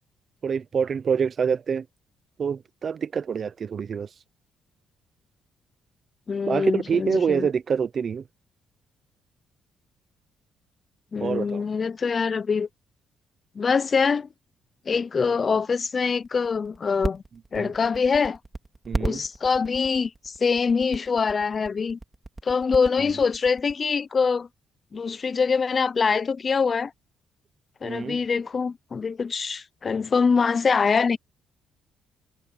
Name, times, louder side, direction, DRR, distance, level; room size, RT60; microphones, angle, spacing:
voice 1, 0.4-1.8 2.4-4.1 6.5-8.2 11.2-11.6 17.6-17.7 18.9-19.2 27.8-28.2, right 6 dB, 50° right, 0.8 m, -26 dB
voice 2, 6.3-7.5 11.1-12.7 13.6-14.3 14.9-17.2 17.5-18.4 19.0-22.0 22.4-24.5 24.9-26.9 27.8-31.2, left 5 dB, 40° left, 0.7 m, -24 dB
sound 1, 16.2-23.7, right 2 dB, 20° right, 2.7 m, -32 dB
cardioid pair, 90°, 0 cm